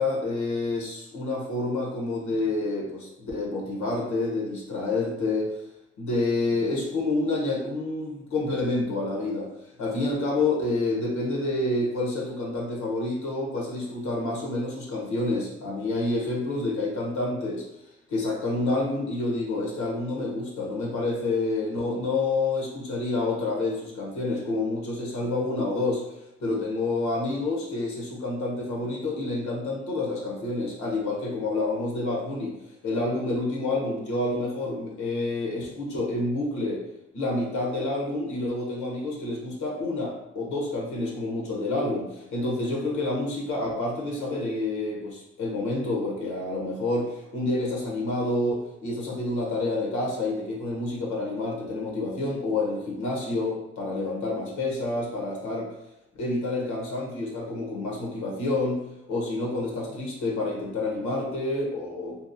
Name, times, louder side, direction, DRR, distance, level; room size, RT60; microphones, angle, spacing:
voice 1, 0.0-5.6 6.0-9.5 9.8-17.7 18.1-32.6 32.8-36.8 37.1-55.7 56.1-58.8 59.1-62.2, left 2 dB, 70° left, -2 dB, 0.8 m, -28 dB
2.8 x 2.0 x 2.5 m, 0.91 s
cardioid pair, 90°, 30 cm